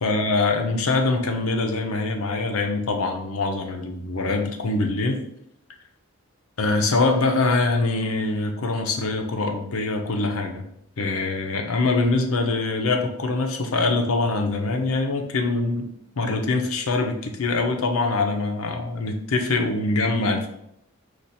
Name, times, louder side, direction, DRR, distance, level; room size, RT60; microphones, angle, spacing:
voice 1, 0.0-5.2 6.6-10.6 11.0-15.9 16.2-20.5, left 3 dB, 75° left, 4 dB, 0.7 m, -24 dB
5.0 x 2.5 x 4.2 m, 0.75 s
head